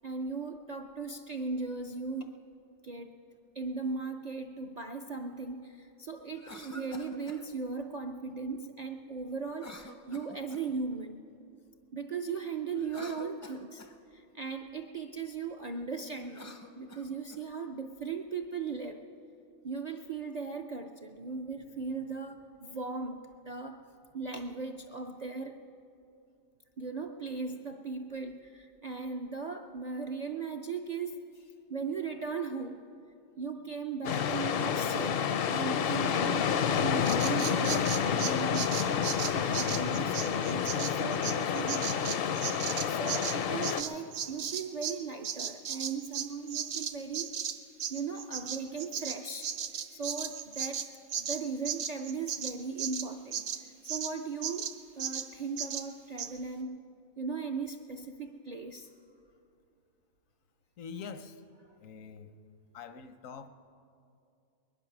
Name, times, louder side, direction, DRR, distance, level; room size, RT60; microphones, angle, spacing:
voice 1, 0.0-2.3 2.8-3.1 3.5-11.2 11.9-19.0 19.6-23.9 24.1-25.6 26.8-32.8 33.4-38.8 39.1-42.2 42.5-47.3 47.9-49.6 49.9-50.9 51.2-56.9 57.2-58.9, right 4 dB, 55° right, 5 dB, 0.4 m, -38 dB
Cough, 6.3-7.4 9.5-10.8 12.7-14.0 16.2-17.4, left 1 dB, 20° left, 0.4 m, -48 dB
sound 1, 34.0-43.8, left 7 dB, 60° left, 0.6 m, -29 dB
Bird vocalization bird call bird song, 37.1-45.0 45.2-54.1 54.4-54.7 55.0-55.3 55.6-55.9 56.2-56.3, right 8 dB, 75° right, 1.1 m, -36 dB
voice 2, 60.8-61.4 61.8-62.3 62.7-63.5, left 6 dB, 80° left, 10 dB, 1.1 m, -44 dB
21.0 x 11.0 x 6.0 m, 2.6 s
omnidirectional pair, 1.4 m